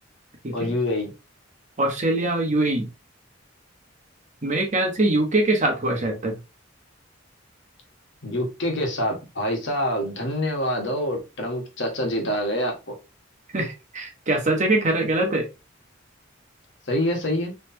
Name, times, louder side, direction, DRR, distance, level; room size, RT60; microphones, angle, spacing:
voice 1, 0.5-1.1 8.2-13.0 16.9-17.6, left 1 dB, 65° left, 1.4 m, -26 dB
voice 2, 1.8-2.9 4.4-6.4 13.5-15.5, right 2 dB, 40° right, 1.1 m, -23 dB
4.1 x 3.2 x 2.7 m
head